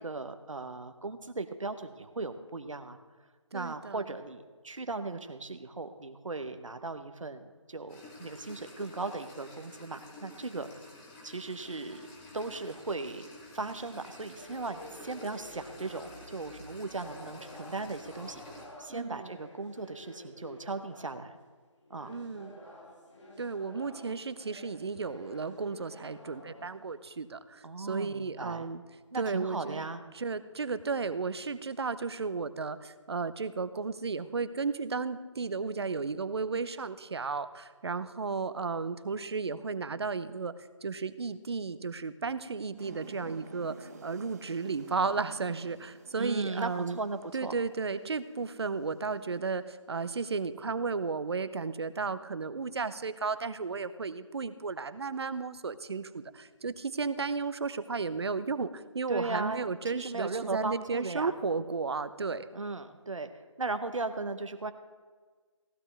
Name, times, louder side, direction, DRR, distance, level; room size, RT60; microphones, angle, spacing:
voice 1, 0.0-3.0 3.5-10.8 11.2-12.0 12.3-13.3 13.5-18.4 18.8-21.4 21.9-22.1 27.6-28.7 29.1-30.0 46.2-47.5 59.1-59.7 59.9-61.3 62.5-64.7, right 3 dB, 80° right, 9 dB, 0.9 m, -37 dB
voice 2, 3.5-4.0 18.9-19.3 22.1-22.6 23.4-28.8 29.2-29.9 30.1-40.5 40.8-47.0 47.3-62.5, right 4 dB, 55° right, 14 dB, 0.7 m, -34 dB
sound 1, 7.9-18.7, left 2 dB, 10° left, 1.0 m, -50 dB
sound 2, 14.4-16.5 16.8-21.4 21.8-27.2, left 1 dB, 65° left, 2.8 m, -51 dB
sound 3, 42.8-49.7, right 4 dB, 30° right, 1.0 m, -52 dB
15.5 x 11.5 x 3.3 m, 1.5 s
figure-of-eight pair, 160°, 16 cm